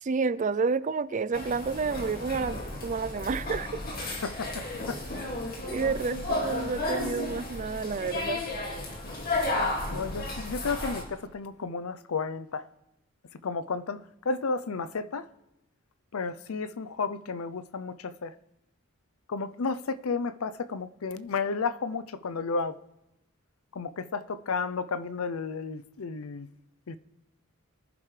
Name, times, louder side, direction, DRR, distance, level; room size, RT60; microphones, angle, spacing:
voice 1, 0.0-3.8 5.6-8.4, right 4 dB, 35° right, 0.4 m, -30 dB
sound 1, 1.3-11.0, left 2 dB, 45° left, 2.3 m, -33 dB
voice 2, 4.2-5.0 9.9-12.6 13.4-15.3 16.1-18.3 19.3-22.8 23.7-26.5 26.9-27.0, left 4 dB, 90° left, 0.6 m, -32 dB
24.5 x 10.5 x 3.3 m
head